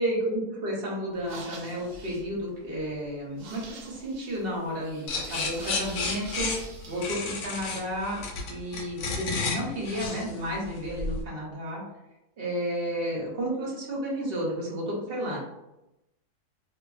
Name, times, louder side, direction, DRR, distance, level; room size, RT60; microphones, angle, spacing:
voice 1, 0.0-6.5 6.9-8.2 8.5-11.8 12.4-15.4, equal, 50° right, -3 dB, 0.8 m, -32 dB
sound 1, 1.1-7.1, right 2 dB, 90° right, 1.1 m, -45 dB
sound 2, 5.1-11.2, left 4 dB, 80° left, 1.1 m, -32 dB
2.5 x 2.5 x 2.3 m, 0.93 s
omnidirectional pair, 1.6 m